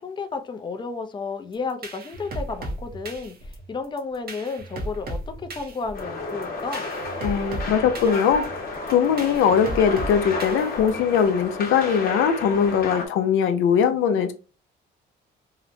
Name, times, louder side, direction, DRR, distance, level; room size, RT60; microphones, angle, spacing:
voice 1, 0.0-6.8, left 4 dB, 25° left, 0.4 m, -32 dB
sound 1, 1.5-11.2, right 1 dB, 50° right, 0.7 m, -36 dB
sound 2, 5.9-13.1, left 3 dB, 50° left, 0.9 m, -32 dB
voice 2, 7.2-8.4 8.9-14.3, left 7 dB, 85° left, 0.4 m, -21 dB
2.8 x 2.0 x 2.6 m
cardioid pair, 90°, 20 cm